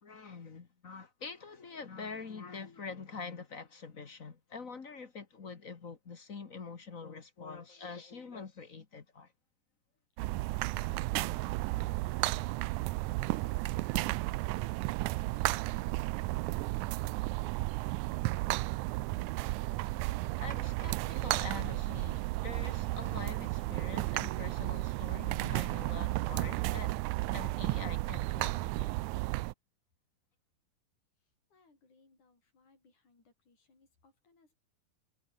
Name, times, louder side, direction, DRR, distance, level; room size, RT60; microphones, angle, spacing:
voice 1, 0.0-9.3 20.4-27.0 27.3-29.0, left 4 dB, 40° left, 1.3 m, -45 dB
sound 1, 10.2-29.5, right 20 dB, 80° right, 1.8 m, -33 dB
voice 2, 10.6-12.7 13.1-16.5 16.8-17.2 31.2-34.6, left 3 dB, 60° left, 9.6 m, -64 dB
omnidirectional pair, 3.9 m